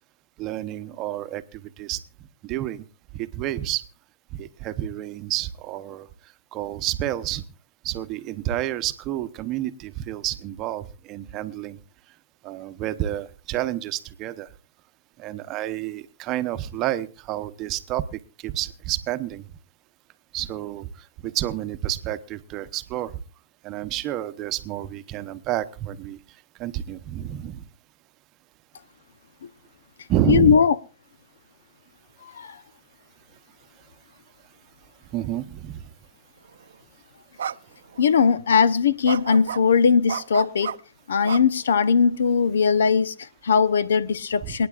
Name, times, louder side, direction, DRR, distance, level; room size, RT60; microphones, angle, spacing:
voice 1, 0.4-2.0 2.4-2.8 3.1-3.8 4.3-6.1 6.5-7.4 7.8-11.8 12.4-14.5 15.2-19.5 20.3-23.2 23.6-26.2 26.6-27.6 30.1-30.6 35.1-35.9 44.4-44.6, right 12 dB, 30° right, 0.8 m, -29 dB
voice 2, 30.3-30.7 32.2-32.6 38.0-40.8 41.1-44.7, left 6 dB, 85° left, 0.8 m, -20 dB
sound 1, 36.6-36.7 37.4-37.6 37.9-38.0 39.1-39.6 40.1-40.8 41.3-42.0, right 8 dB, 85° right, 0.5 m, -32 dB
28.0 x 9.4 x 2.5 m
hypercardioid pair, 150°, 0 cm